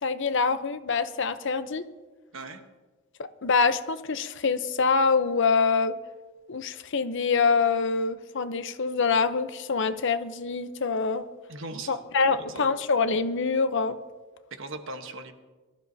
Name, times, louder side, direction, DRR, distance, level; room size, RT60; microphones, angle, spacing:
voice 1, 0.0-1.8 3.2-5.9 6.5-11.3 11.9-14.0, left 4 dB, 60° left, 11 dB, 0.7 m, -25 dB
voice 2, 11.5-11.9 12.2-12.7 14.5-15.3, right 2 dB, 65° right, 7 dB, 1.1 m, -39 dB
22.5 x 12.5 x 2.7 m, 1.3 s
head